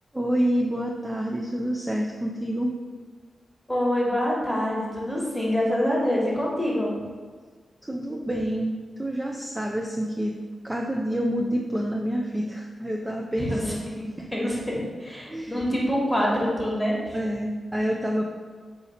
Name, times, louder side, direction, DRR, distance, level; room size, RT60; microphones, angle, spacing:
voice 1, 0.1-2.7 7.9-10.4 10.6-13.8 14.2-14.3 15.3-15.7 17.1-18.2, equal, 15° right, -1 dB, 0.4 m, -28 dB
voice 2, 3.7-6.9 13.4-17.2, equal, 5° left, -4 dB, 1.3 m, -26 dB
4.1 x 2.5 x 4.2 m, 1.5 s
cardioid pair, 60°, 0 cm